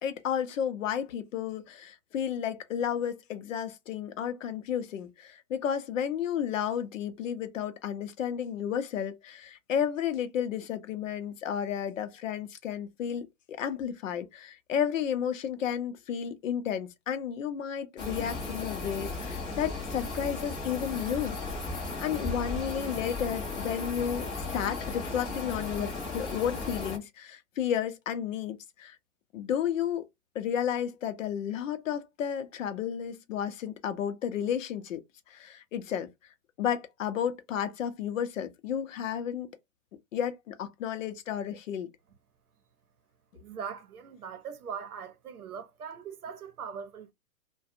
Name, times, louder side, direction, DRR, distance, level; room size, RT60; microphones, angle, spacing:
voice 1, 0.0-21.4 22.0-29.0 29.3-30.1 30.3-35.0 35.3-36.1 36.6-39.5 40.1-41.9, left 9 dB, 60° left, 0.7 m, -32 dB
sound 1, 18.0-27.0, left 3 dB, 10° left, 0.4 m, -35 dB
voice 2, 43.3-47.1, right 7 dB, 80° right, 0.7 m, -41 dB
2.4 x 2.2 x 2.7 m
hypercardioid pair, 120°, 44 cm